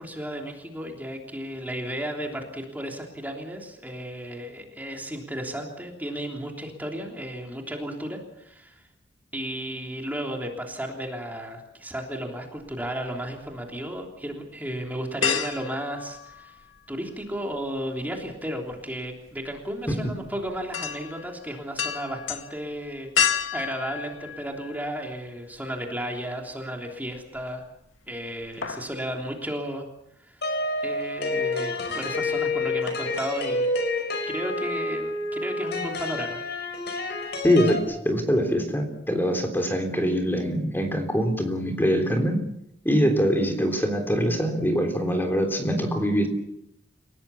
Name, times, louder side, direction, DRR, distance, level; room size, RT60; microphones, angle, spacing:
voice 1, 0.0-8.8 9.3-16.6 16.9-27.6 28.1-29.9 30.2-30.5 30.8-33.7 34.3-36.4 37.0-37.2, equal, 10° right, 1 dB, 3.3 m, -34 dB
sound 1, 12.7-13.6 14.0-14.1 15.2-16.9 17.2-25.1 25.5-25.6 27.1-27.7 27.9-28.2 28.4-29.0 29.3-29.4, left 7 dB, 85° left, 2.0 m, -31 dB
sound 2, 30.4-37.8, left 2 dB, 60° left, 5.0 m, -28 dB
voice 2, 37.4-37.8 38.1-42.4 42.9-46.3, equal, 10° left, 4 dB, 3.5 m, -23 dB
30.0 x 18.0 x 7.1 m, 0.78 s
head